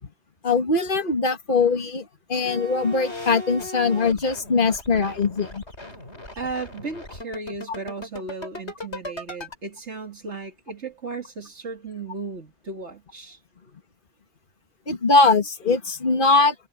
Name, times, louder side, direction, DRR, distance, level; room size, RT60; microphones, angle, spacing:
voice 1, 0.4-5.6 14.9-16.5, left 4 dB, 50° left, 2.2 m, -21 dB
sound 1, 2.5-9.6, left 1 dB, 75° left, 6.7 m, -37 dB
voice 2, 6.4-13.4, right 3 dB, 85° right, 2.7 m, -35 dB
omnidirectional pair, 1.1 m